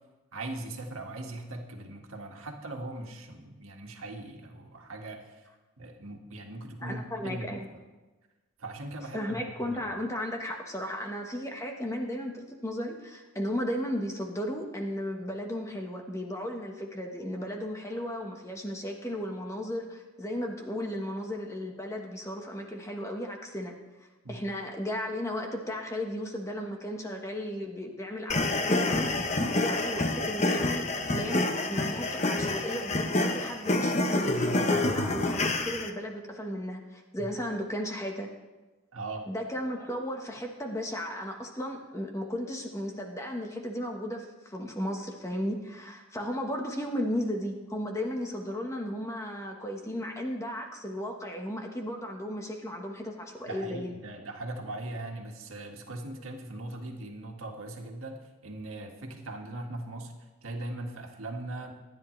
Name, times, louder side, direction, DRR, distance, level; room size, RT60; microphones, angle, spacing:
voice 1, 0.3-5.5 5.8-7.6 8.6-9.8 24.2-24.4 37.2-37.3 38.9-39.2 53.5-60.1 60.4-61.7, right 2 dB, 85° right, 2 dB, 1.9 m, -40 dB
voice 2, 6.8-7.7 9.1-23.7 24.3-38.3 39.3-54.0, equal, 15° left, 2 dB, 1.3 m, -35 dB
sound 1, 28.3-35.9, left 2 dB, 35° left, 0.9 m, -28 dB
25.5 x 10.5 x 3.3 m, 1.2 s
head